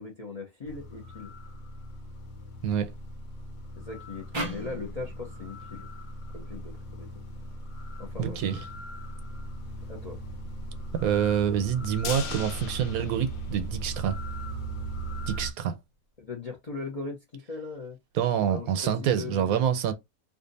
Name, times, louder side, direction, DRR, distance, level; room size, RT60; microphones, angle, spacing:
voice 1, 0.0-1.3 3.8-5.9 6.3-7.1 8.0-8.4 9.9-10.2 16.2-18.0 18.4-19.6, left 4 dB, 40° left, 0.6 m, -39 dB
sound 1, 0.6-15.5, right 2 dB, 60° left, 1.1 m, -38 dB
sound 2, 4.3-7.6, right 1 dB, 35° right, 0.4 m, -40 dB
voice 2, 8.2-8.6 10.9-14.2 15.3-15.8 18.1-19.9, right 9 dB, 80° right, 1.0 m, -27 dB
sound 3, 12.0-14.2 14.5-14.6 15.0-15.1, left 7 dB, 85° left, 0.4 m, -39 dB
2.6 x 2.4 x 3.9 m
omnidirectional pair, 1.6 m